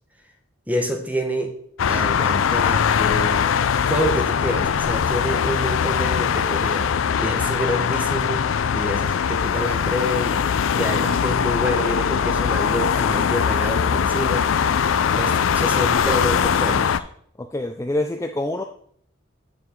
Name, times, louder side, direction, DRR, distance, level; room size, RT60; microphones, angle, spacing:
voice 1, 0.7-1.5 1.9-3.5 3.9-8.4 8.7-10.4 10.8-14.9 15.1-17.0, equal, 10° right, 3 dB, 1.0 m, -27 dB
sound 1, 1.8-17.0, left 7 dB, 85° left, 0.4 m, -21 dB
voice 2, 17.4-18.6, left 1 dB, 15° left, 5 dB, 0.3 m, -26 dB
8.0 x 6.9 x 3.6 m, 0.63 s
head